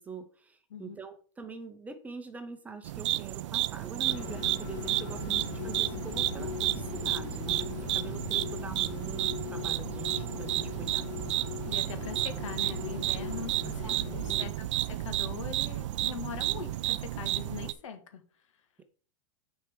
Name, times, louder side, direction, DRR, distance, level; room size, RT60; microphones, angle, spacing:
voice 1, 0.0-11.1 13.5-14.5 18.8-18.9, right 4 dB, 10° right, 7 dB, 0.7 m, -44 dB
sound 1, 2.8-17.7, right 15 dB, 70° right, 0.4 m, -32 dB
sound 2, 4.0-14.5, left 13 dB, 50° left, 0.4 m, -40 dB
voice 2, 11.7-18.2, left 7 dB, 85° left, 8 dB, 1.7 m, -41 dB
6.8 x 4.5 x 6.1 m, 0.41 s
supercardioid pair, 160°, 16 cm